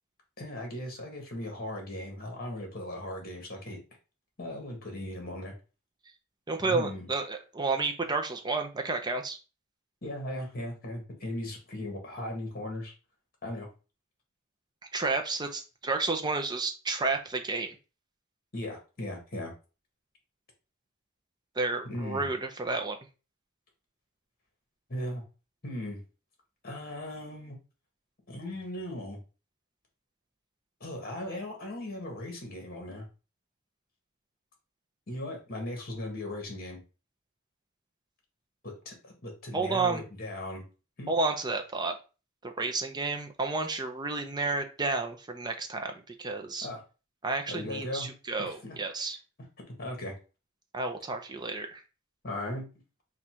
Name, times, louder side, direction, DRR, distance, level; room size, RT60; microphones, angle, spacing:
voice 1, 0.4-3.8 4.4-5.5 6.6-7.1 10.0-12.9 13.4-13.7 18.5-19.5 21.8-22.3 24.9-25.2 25.6-26.0 26.6-27.6 28.3-29.2 30.8-33.0 35.1-36.8 38.6-40.6 41.0-41.1 46.6-46.8 47.5-48.1 48.4-48.8 49.8-50.1 52.2-52.7, left 1 dB, 45° left, 2 dB, 1.6 m, -37 dB
voice 2, 6.5-9.4 14.9-17.7 21.6-23.0 39.5-40.0 41.1-41.9 42.4-46.7 47.2-49.2 50.7-51.8, right 3 dB, 20° right, 5 dB, 0.6 m, -31 dB
4.1 x 2.4 x 4.3 m, 0.33 s
head